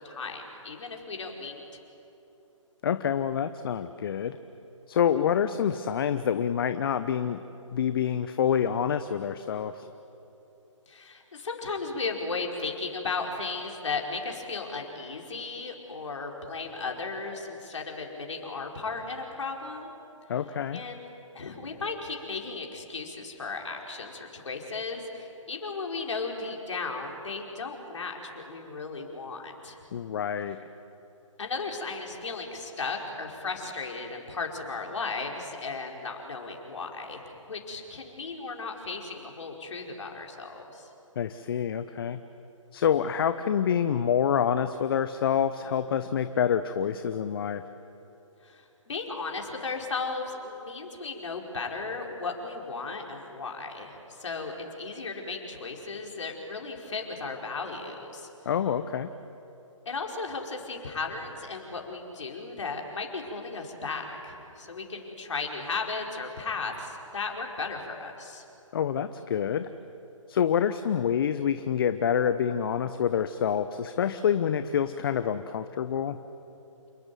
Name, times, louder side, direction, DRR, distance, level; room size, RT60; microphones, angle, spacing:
voice 1, 0.0-1.6 10.9-19.9 20.7-21.1 21.3-29.8 31.4-40.9 48.4-58.3 59.8-68.4, left 4 dB, 65° left, 1 dB, 4.8 m, -35 dB
voice 2, 2.8-4.4 4.9-7.4 7.7-9.9 20.3-20.8 29.9-30.6 41.2-42.2 42.7-47.6 58.4-59.1 68.7-69.7 70.3-76.2, left 8 dB, 45° left, 11 dB, 0.9 m, -27 dB
28.5 x 20.0 x 9.4 m, 2.9 s
figure-of-eight pair, 140°, 17 cm